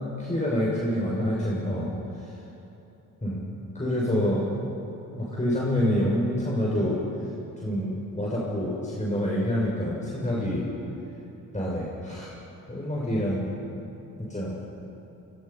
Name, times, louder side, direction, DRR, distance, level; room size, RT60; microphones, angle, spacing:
voice 1, 0.0-1.9 3.2-4.8 5.1-7.0 7.6-10.6 11.5-12.3 12.7-13.5 14.3-14.5, equal, 20° left, -5 dB, 6.3 m, -27 dB
24.5 x 24.0 x 5.7 m, 3.0 s
supercardioid pair, 45°, 36 cm